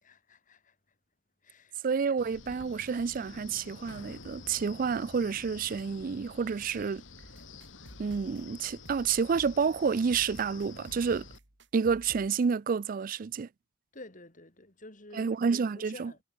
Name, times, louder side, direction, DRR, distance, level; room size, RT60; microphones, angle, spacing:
voice 1, 0.0-1.0 1.4-1.8 13.9-15.3 15.7-16.2, left 2 dB, 45° left, 4.2 m, -50 dB
voice 2, 1.8-7.0 8.0-11.3 11.7-13.5 15.2-16.1, right 5 dB, 45° right, 0.4 m, -29 dB
Wind, 2.2-11.4, left 3 dB, 80° left, 4.4 m, -49 dB
sound 1, 7.2-12.3, right 1 dB, 65° right, 3.9 m, -53 dB
head